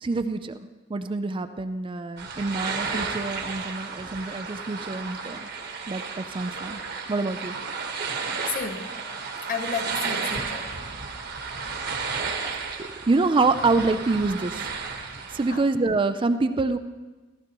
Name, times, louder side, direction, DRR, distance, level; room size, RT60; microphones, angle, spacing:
voice 1, 0.0-0.6 0.9-5.5 5.9-6.8 7.1-7.6 12.8-14.6 15.3-16.8, right 3 dB, 25° right, 9 dB, 0.4 m, -26 dB
sound 1, 2.2-15.6, right 5 dB, 60° right, 1.4 m, -33 dB
voice 2, 8.5-9.0 9.5-10.8 15.5-15.7, left 5 dB, 45° left, 5 dB, 0.9 m, -32 dB
15.5 x 13.5 x 3.0 m, 1.2 s
head